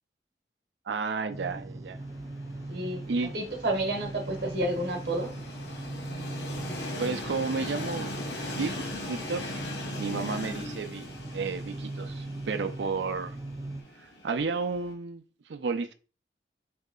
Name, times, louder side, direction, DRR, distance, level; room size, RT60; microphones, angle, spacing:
voice 1, 0.9-2.0 3.1-3.3 7.0-8.2 8.5-9.6 10.0-13.4 14.0-15.2 15.5-15.9, right 4 dB, 90° right, 0.5 m, -32 dB
sound 1, 1.3-13.8, right 2 dB, 20° right, 0.3 m, -40 dB
Train, 2.0-14.9, left 2 dB, 80° left, 0.9 m, -40 dB
voice 2, 2.7-3.1 3.3-5.3, right 1 dB, 65° right, 0.9 m, -30 dB
3.2 x 2.8 x 3.7 m
head